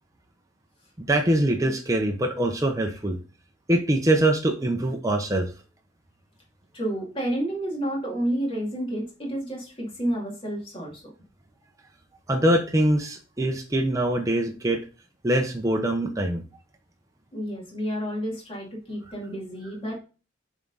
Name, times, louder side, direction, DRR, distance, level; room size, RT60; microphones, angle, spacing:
voice 1, 1.1-3.2 3.7-5.5 12.3-14.8 15.2-16.4, right 1 dB, 15° right, 3 dB, 0.6 m, -23 dB
voice 2, 6.7-11.0 17.3-20.0, right 1 dB, 25° left, -2 dB, 2.2 m, -30 dB
7.1 x 3.6 x 3.9 m, 0.34 s
head